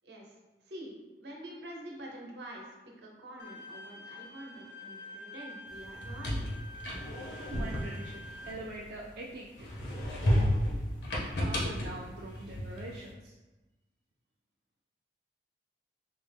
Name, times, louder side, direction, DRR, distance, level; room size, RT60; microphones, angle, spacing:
voice 1, 0.7-2.7 3.0-6.5, right 1 dB, 75° right, -1 dB, 0.8 m, -46 dB
Bowed string instrument, 3.4-8.5, left 1 dB, 65° left, 0.4 m, -47 dB
sound 1, 5.8-9.1 9.6-13.0, equal, 85° left, 0.8 m, -32 dB
voice 2, 7.4-9.7 11.4-13.3, right 2 dB, 55° right, -4 dB, 0.4 m, -43 dB
4.0 x 2.1 x 3.3 m, 1.1 s
head